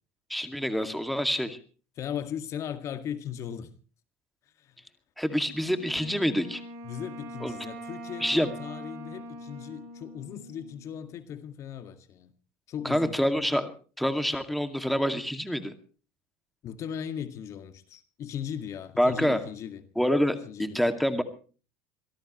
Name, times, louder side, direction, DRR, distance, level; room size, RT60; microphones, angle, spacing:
voice 1, 0.3-1.6 5.2-6.6 7.4-7.5 8.2-8.5 12.8-13.7 14.0-15.7 19.0-19.4 20.0-21.2, equal, ahead, 2.2 m, -26 dB
voice 2, 2.0-3.7 4.6-4.8 6.8-12.3 12.7-13.2 16.6-19.8 20.5-20.8, left 9 dB, 45° left, 1.9 m, -38 dB
Wind instrument woodwind instrument, 5.6-11.1, right 1 dB, 80° right, 7.6 m, -43 dB
25.5 x 18.0 x 3.1 m
supercardioid pair, 100°, 7 cm